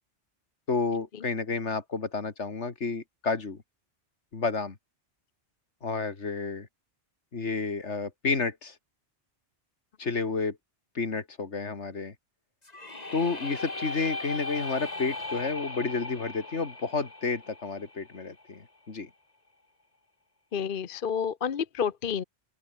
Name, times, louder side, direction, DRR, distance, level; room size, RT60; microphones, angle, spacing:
voice 1, 0.7-3.6 4.3-4.8 5.8-6.7 7.3-8.7 10.0-10.6 10.9-12.1 13.1-19.1, left 4 dB, 75° left, 2.5 m, -30 dB
sound 1, 12.6-18.5, left 2 dB, 35° left, 2.5 m, -38 dB
voice 2, 20.5-22.2, left 7 dB, 50° left, 1.0 m, -29 dB
open air
omnidirectional pair, 1.2 m